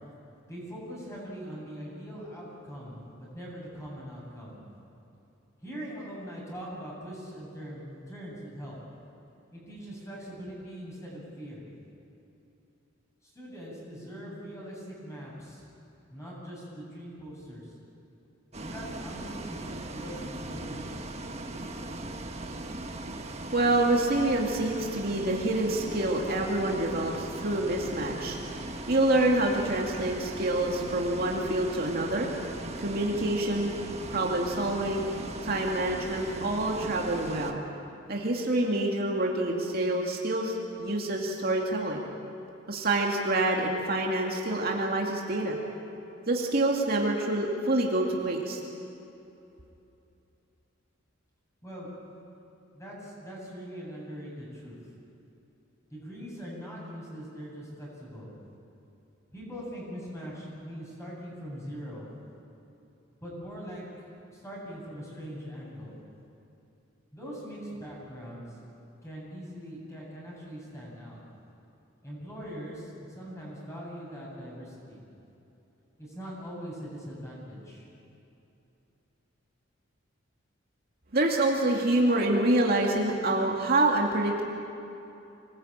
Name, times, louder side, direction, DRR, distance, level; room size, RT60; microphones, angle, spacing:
voice 1, 0.5-4.6 5.6-8.8 9.5-11.7 13.2-15.6 16.1-17.7 18.6-21.1 51.6-51.9 52.7-54.8 55.9-58.3 59.3-62.1 63.2-63.8 64.3-65.9 67.1-68.5 69.0-71.2 72.0-75.0 76.0-77.9, equal, 15° left, -4 dB, 7.9 m, -41 dB
Bus, 18.5-37.5, right 2 dB, 30° right, 1.5 m, -39 dB
voice 2, 23.5-28.6 28.9-32.3 32.8-33.7 34.1-35.0 35.4-37.6 38.1-42.0 42.7-45.6 46.3-48.6 81.1-84.4, right 2 dB, 50° right, -1 dB, 2.4 m, -27 dB
25.5 x 19.5 x 8.9 m, 2.9 s
head